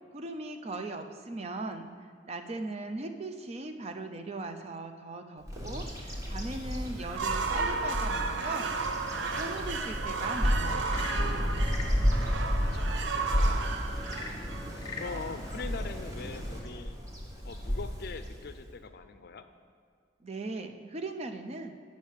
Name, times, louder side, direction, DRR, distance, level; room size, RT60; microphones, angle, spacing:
voice 1, 0.0-8.7 9.1-11.0 20.2-21.8, right 2 dB, 35° right, 6 dB, 0.5 m, -39 dB
Bird vocalization bird call bird song, 5.5-18.7, equal, 20° right, 1.2 m, -32 dB
sound 1, 7.0-15.1, right 4 dB, 80° right, 0.6 m, -34 dB
Frog / Percussion / Wood, 10.9-12.0 14.0-15.2, left 4 dB, 25° left, 0.9 m, -42 dB
voice 2, 11.7-13.8 14.9-17.0 17.4-19.5, left 4 dB, 55° left, 10 dB, 0.5 m, -43 dB
8.3 x 5.3 x 6.4 m, 2.3 s
head